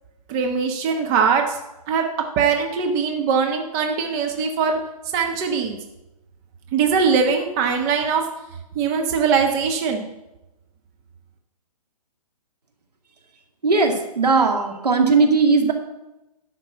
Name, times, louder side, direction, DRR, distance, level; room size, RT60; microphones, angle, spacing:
voice 1, 0.3-1.6 1.9-2.1 2.4-4.8 5.1-5.8 6.7-8.2 8.7-10.0, right 6 dB, 30° right, 3 dB, 1.3 m, -21 dB
voice 2, 13.6-15.7, right 4 dB, 80° right, 3 dB, 2.3 m, -18 dB
12.0 x 6.0 x 8.1 m, 0.97 s
hypercardioid pair, 140°, 20 cm